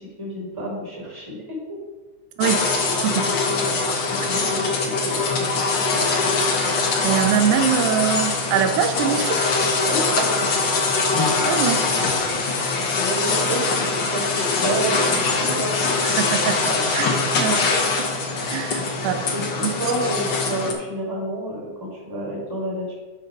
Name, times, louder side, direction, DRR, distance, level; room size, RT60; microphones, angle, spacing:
voice 1, 0.0-1.6 3.4-3.8 4.1-6.0 9.9-10.5 12.7-16.0 16.7-16.8 18.7-18.8 19.3-22.9, right 1 dB, 5° right, -5 dB, 3.2 m, -30 dB
sound 1, 2.4-20.7, left 3 dB, 55° left, 1.3 m, -22 dB
voice 2, 7.0-9.5 11.5-11.8 16.0-17.1 17.4-17.6 18.0-18.1 18.5-19.1, right 8 dB, 90° right, 6 dB, 2.3 m, -23 dB
12.0 x 4.5 x 5.3 m, 1.2 s
omnidirectional pair, 3.4 m